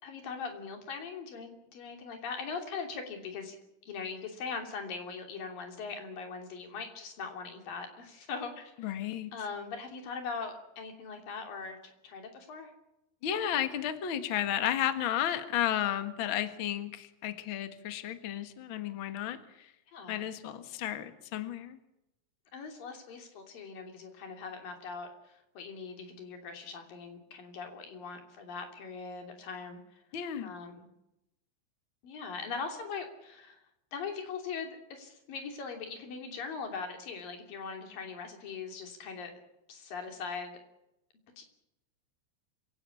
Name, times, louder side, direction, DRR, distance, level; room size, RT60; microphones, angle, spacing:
voice 1, 0.0-3.6 3.8-9.0 9.3-12.7 19.9-20.3 22.5-30.0 30.4-30.9 32.0-33.6 33.9-39.3 39.7-40.6 41.4-41.5, left 5 dB, 55° left, 4 dB, 4.5 m, -41 dB
voice 2, 8.8-9.3 13.2-19.7 20.1-21.8 30.1-30.5, left 10 dB, 85° left, 9 dB, 1.1 m, -33 dB
26.0 x 17.0 x 8.5 m, 0.87 s
omnidirectional pair, 5.1 m